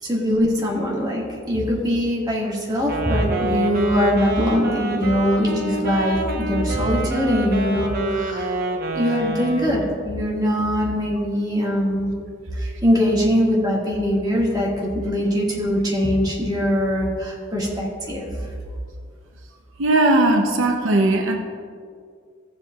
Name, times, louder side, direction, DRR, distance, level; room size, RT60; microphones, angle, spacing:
voice 1, 0.0-8.6 8.9-12.1 12.5-18.5, equal, 20° right, -4 dB, 1.8 m, -22 dB
Wind instrument woodwind instrument, 2.8-10.0, right 2 dB, 50° right, 1.0 m, -27 dB
voice 2, 19.8-21.4, right 2 dB, 80° right, 3 dB, 0.7 m, -18 dB
15.0 x 7.4 x 2.4 m, 2.1 s
head